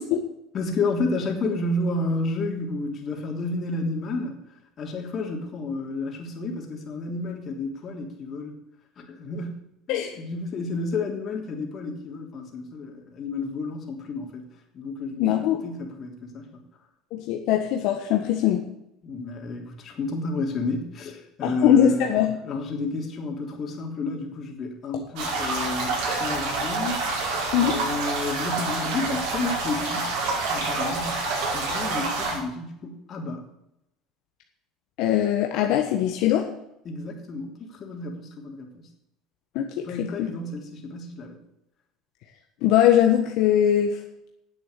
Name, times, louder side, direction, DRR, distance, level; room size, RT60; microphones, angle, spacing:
voice 1, 0.5-8.6 9.0-14.5 14.7-16.6 19.0-27.3 27.6-30.2 30.5-33.5 36.8-38.9 39.8-41.4, left 3 dB, 40° left, 1 dB, 3.2 m, -31 dB
voice 2, 15.2-15.6 17.1-18.6 21.4-22.4 24.9-25.0 27.5-27.7 35.0-36.5 39.5-40.3 42.6-44.0, left 11 dB, 70° left, 2 dB, 1.3 m, -21 dB
sound 1, 25.2-32.4, right 3 dB, 75° right, 5.3 m, -27 dB
9.8 x 8.0 x 8.2 m, 0.83 s
supercardioid pair, 115°, 0 cm